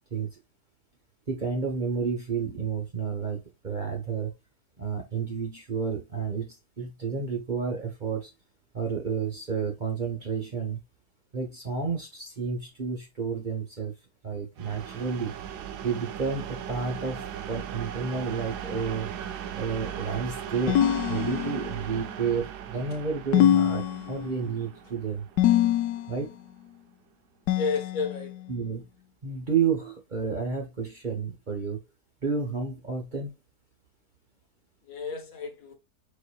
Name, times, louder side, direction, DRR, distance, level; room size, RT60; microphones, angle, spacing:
voice 1, 1.3-4.3 4.8-8.3 8.7-10.8 11.3-13.9 14.2-15.4 15.8-25.3 26.1-26.3 28.5-28.8 29.2-31.8 32.2-33.3, right 5 dB, 35° right, 1.0 m, -31 dB
sound 1, 14.6-26.2, right 9 dB, 85° right, 1.2 m, -38 dB
sound 2, 20.7-21.9 23.3-24.5 25.4-26.2 27.5-28.4, left 11 dB, 80° left, 1.1 m, -24 dB
voice 2, 27.6-28.4 34.9-35.7, left 5 dB, 60° left, 1.5 m, -31 dB
4.6 x 4.3 x 2.3 m
omnidirectional pair, 1.7 m